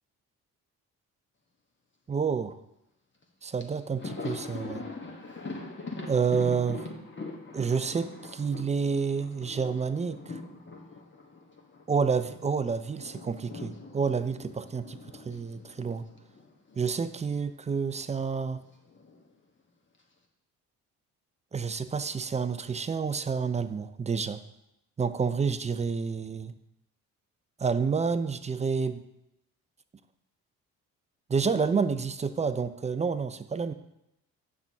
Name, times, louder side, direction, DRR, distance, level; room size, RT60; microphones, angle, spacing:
voice 1, 2.1-2.6 3.4-4.8 6.1-6.9 7.5-10.4 11.9-16.0 16.8-18.6 21.5-24.4 25.0-26.5 27.6-29.0 31.3-33.7, right 5 dB, 15° right, 12 dB, 0.4 m, -29 dB
Thunder, 3.2-3.3 3.6-12.4 12.7-17.0 17.2-17.4 18.6-19.3, left 3 dB, 25° left, 1.3 m, -42 dB
8.6 x 5.8 x 3.5 m, 0.87 s
hypercardioid pair, 50°, 44 cm